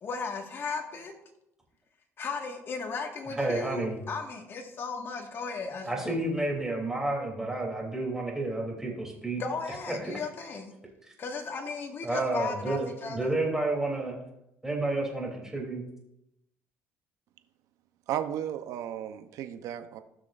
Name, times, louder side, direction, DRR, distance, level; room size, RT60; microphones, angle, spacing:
voice 1, 0.0-1.1 2.2-6.2 9.4-10.7 11.2-13.3, left 4 dB, 40° left, 3 dB, 1.7 m, -36 dB
voice 2, 3.4-4.0 5.8-9.4 12.0-14.2 14.6-15.8, right 2 dB, 10° right, -1 dB, 3.1 m, -30 dB
voice 3, 18.1-20.0, right 10 dB, 75° right, 10 dB, 0.7 m, -34 dB
15.5 x 6.2 x 2.5 m, 0.84 s
cardioid pair, 100°, 6 cm